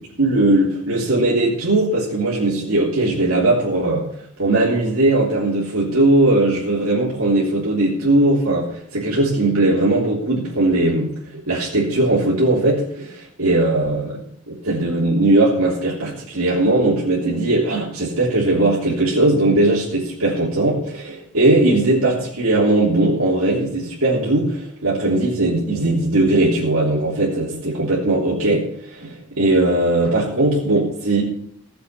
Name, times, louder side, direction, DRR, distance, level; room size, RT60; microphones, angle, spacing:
voice 1, 0.2-4.1 4.4-14.2 14.5-31.2, right 2 dB, 70° right, -5 dB, 3.3 m, -19 dB
17.0 x 7.8 x 5.8 m, 0.67 s
head